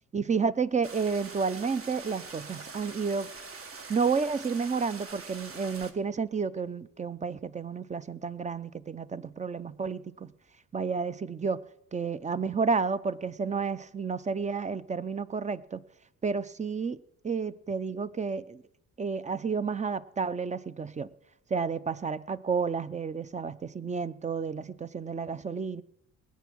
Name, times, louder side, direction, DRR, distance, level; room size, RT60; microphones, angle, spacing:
voice 1, 0.1-3.3 3.9-10.3 10.7-11.6 11.9-15.8 16.2-17.0 17.2-18.6 19.0-21.1 21.5-25.8, right 5 dB, 25° right, 0.6 m, -31 dB
sound 1, 0.8-5.9, right 4 dB, 45° right, 1.7 m, -44 dB
20.0 x 8.4 x 6.2 m
cardioid pair, 90°, 30 cm